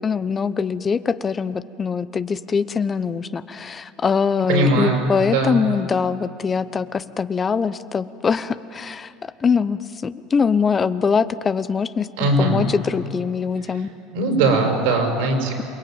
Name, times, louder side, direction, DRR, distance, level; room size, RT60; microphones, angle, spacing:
voice 1, 0.0-9.1 9.4-13.9, left 5 dB, 30° left, 13 dB, 0.9 m, -23 dB
voice 2, 4.5-5.6 12.2-12.6 14.1-15.6, right 2 dB, 80° right, 3 dB, 6.0 m, -20 dB
28.0 x 19.5 x 9.0 m, 2.4 s
supercardioid pair, 95°, 0 cm